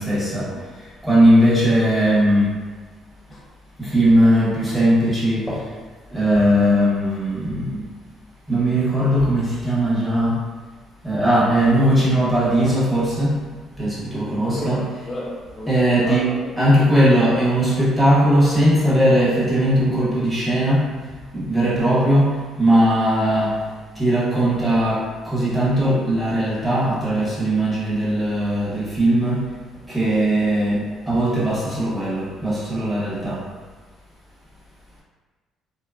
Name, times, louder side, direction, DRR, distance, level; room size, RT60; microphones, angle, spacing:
voice 1, 0.0-2.6 3.8-5.7 6.1-7.9 8.5-10.4 11.0-13.4 13.8-15.2 15.7-23.7 23.9-29.5 29.9-33.4, right 1 dB, 5° right, 0.8 m, -19 dB
voice 2, 14.2-17.0, left 1 dB, 20° left, 0.4 m, -33 dB
2.7 x 2.3 x 2.2 m
cardioid pair, 150°, 0 cm